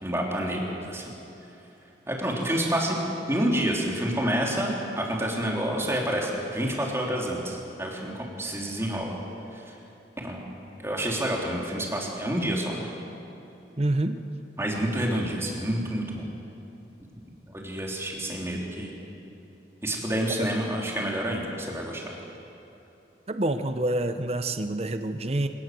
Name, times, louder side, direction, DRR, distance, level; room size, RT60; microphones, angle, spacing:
voice 1, 0.0-1.0 2.1-3.0 3.3-9.2 9.5-9.7 10.2-10.5 10.8-12.9 14.6-16.3 17.5-19.0 19.8-22.0, right 1 dB, 15° right, -2 dB, 3.6 m, -28 dB
voice 2, 13.8-14.2 23.3-25.5, right 1 dB, 35° right, 8 dB, 0.8 m, -27 dB
26.0 x 19.0 x 7.8 m, 3.0 s
head